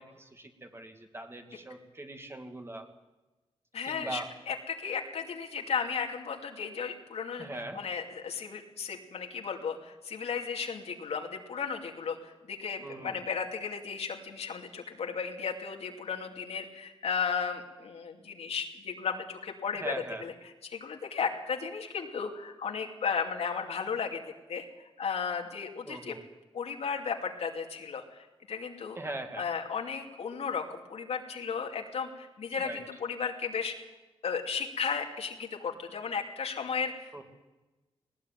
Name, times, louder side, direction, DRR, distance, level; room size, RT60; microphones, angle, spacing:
voice 1, 0.0-2.9 3.9-4.3 7.4-7.8 12.8-13.2 19.8-20.2 25.8-26.2 29.0-29.4 32.6-32.8 37.1-37.2, right 2 dB, 25° right, 5 dB, 2.5 m, -41 dB
voice 2, 3.7-20.3 20.6-24.2 24.5-24.7 25.0-26.2 26.5-29.0 29.4-33.7 34.2-37.2, left 6 dB, 80° left, 1 dB, 2.7 m, -35 dB
19.0 x 19.0 x 9.2 m, 1.1 s
wide cardioid pair, 120°, 11 cm